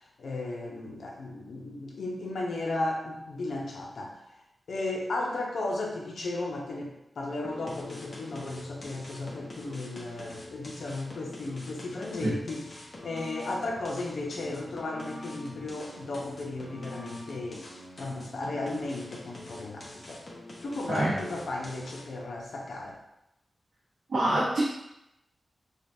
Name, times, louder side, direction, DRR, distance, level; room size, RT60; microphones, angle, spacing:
voice 1, 0.2-4.2 4.7-17.6 18.0-20.2 20.6-23.0, left 2 dB, 80° left, -1 dB, 0.7 m, -35 dB
sound 1, 7.4-22.2, left 1 dB, 40° left, 0.9 m, -45 dB
voice 2, 24.1-24.6, right 1 dB, 80° right, -9 dB, 0.9 m, -26 dB
5.0 x 2.3 x 2.6 m, 0.85 s
wide cardioid pair, 120°, 0 cm